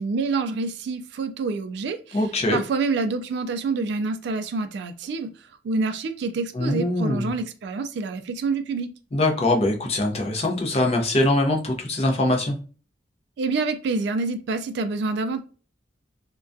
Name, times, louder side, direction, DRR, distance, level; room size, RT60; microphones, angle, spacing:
voice 1, 0.0-8.9 13.4-15.4, right 4 dB, 60° right, 0.3 m, -27 dB
voice 2, 2.1-2.6 6.5-7.3 9.1-12.6, left 1 dB, 35° left, 0.5 m, -22 dB
2.3 x 2.2 x 2.5 m
head